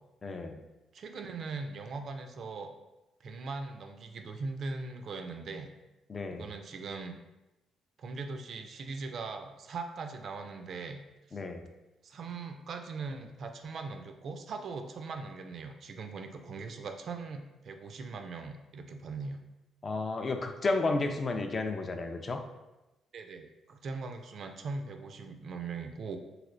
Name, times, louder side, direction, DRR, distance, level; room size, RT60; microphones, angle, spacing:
voice 1, 0.2-0.6 6.1-6.5 11.3-11.6 19.8-22.4, left 3 dB, 35° left, 6 dB, 0.3 m, -32 dB
voice 2, 0.9-2.7 3.2-5.7 6.4-7.1 8.0-11.0 11.3-11.4 12.0-19.4 23.1-26.2, right 4 dB, 60° right, 5 dB, 0.3 m, -40 dB
3.2 x 2.9 x 2.5 m, 1.0 s
cardioid pair, 90°, 0 cm